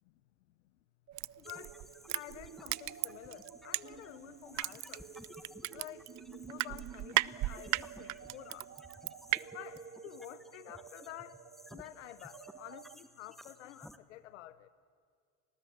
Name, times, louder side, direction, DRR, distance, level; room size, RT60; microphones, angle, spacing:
sound 1, 1.1-12.9, right 7 dB, 35° right, 1.2 m, -52 dB
Crushing, 1.2-4.2 4.5-9.4 9.8-9.9, right 19 dB, 55° right, 0.5 m, -35 dB
voice 1, 1.4-1.8 2.1-5.1 5.7-8.7 9.4-11.4 11.7-14.7, left 14 dB, 90° left, 15 dB, 0.8 m, -50 dB
sound 2, 1.4-14.0, equal, ahead, 1.5 m, -56 dB
28.5 x 19.5 x 8.4 m, 2.2 s
hypercardioid pair, 75°, 36 cm